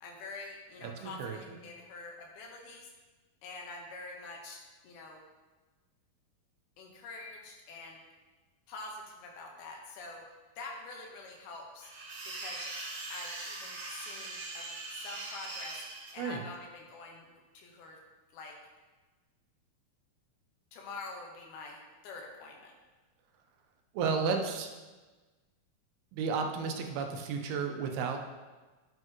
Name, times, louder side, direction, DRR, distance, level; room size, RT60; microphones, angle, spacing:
voice 1, 0.0-2.9 3.4-5.2 6.8-8.0 8.7-10.2 10.6-11.9 12.3-12.7 13.1-15.8 16.1-17.3 17.5-18.0 18.3-18.6 20.7-21.8 22.0-22.7, left 3 dB, 85° left, 0 dB, 3.1 m, -46 dB
voice 2, 0.8-1.6 16.2-16.5 23.9-24.7 26.1-28.2, right 5 dB, 90° right, 4 dB, 2.8 m, -33 dB
sound 1, 11.8-16.1, right 2 dB, 55° right, 3.4 m, -41 dB
9.7 x 7.9 x 3.1 m, 1.3 s
omnidirectional pair, 4.4 m